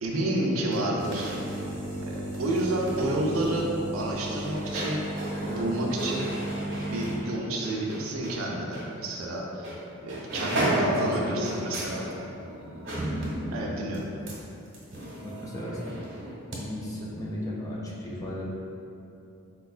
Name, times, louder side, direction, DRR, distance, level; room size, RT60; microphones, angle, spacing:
voice 1, 0.0-1.6 2.1-5.0 5.4-6.3 6.9-9.8 10.0-12.1 13.5-14.1, right 1 dB, 85° right, -2 dB, 0.4 m, -29 dB
sound 1, 0.6-8.4 8.7-8.9 9.6-9.8 10.1-16.6 16.9-17.0, right 1 dB, 65° right, 0.8 m, -34 dB
voice 2, 10.4-11.7 13.4-13.5 15.2-16.0 16.6-18.5, left 1 dB, 15° left, -4 dB, 0.3 m, -35 dB
4.4 x 2.2 x 2.3 m, 2.7 s
head